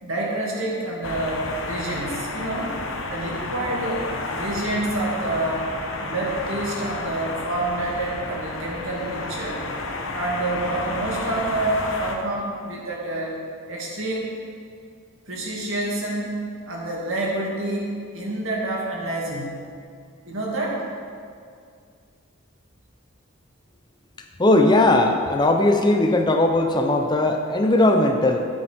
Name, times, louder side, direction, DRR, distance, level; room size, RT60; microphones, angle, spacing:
voice 1, 0.0-2.7 3.1-4.0 4.3-5.7 6.0-9.6 10.1-13.4 13.7-14.3 15.3-16.4 16.7-19.7 20.3-20.8, right 2 dB, 75° right, -3 dB, 2.3 m, -28 dB
sound 1, 1.0-12.2, left 2 dB, 70° left, 1.0 m, -31 dB
voice 2, 24.4-28.5, left 2 dB, 20° left, 4 dB, 0.6 m, -18 dB
12.5 x 8.7 x 3.6 m, 2.2 s
head